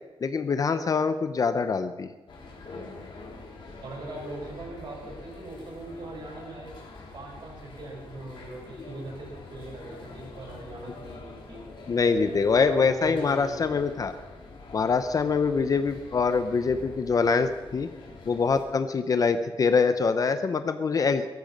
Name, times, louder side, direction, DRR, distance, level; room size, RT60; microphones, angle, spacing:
voice 1, 0.2-2.1 11.9-14.1 14.7-17.9 18.3-21.3, left 5 dB, 35° left, 10 dB, 0.7 m, -24 dB
sound 1, 2.3-18.7, left 3 dB, 55° left, 3.6 m, -45 dB
voice 2, 3.8-6.8 7.1-11.6 12.1-13.6, right 2 dB, 50° right, 0 dB, 5.1 m, -40 dB
17.5 x 14.0 x 5.4 m, 1.2 s
wide cardioid pair, 180°, 10 cm